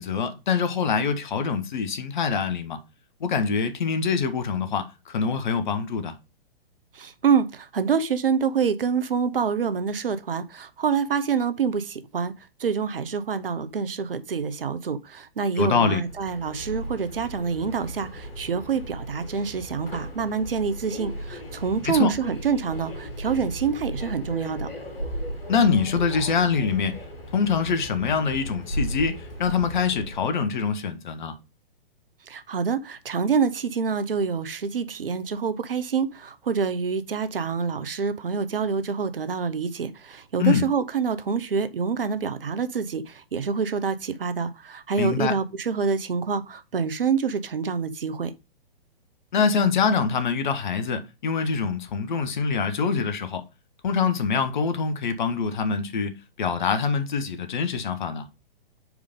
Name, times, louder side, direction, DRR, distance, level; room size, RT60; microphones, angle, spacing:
voice 1, 0.0-2.8 3.2-6.1 15.6-16.0 21.8-22.1 25.5-26.9 27.3-31.3 40.4-40.7 45.0-45.3 49.3-53.4 53.8-58.3, left 5 dB, 50° left, 1.2 m, -24 dB
voice 2, 6.9-12.3 12.6-24.7 32.3-48.3, right 6 dB, 70° right, 0.9 m, -26 dB
Subway metro underground, 15.9-30.3, equal, 70° left, 2.5 m, -36 dB
5.0 x 4.8 x 5.2 m
figure-of-eight pair, 120°, 30 cm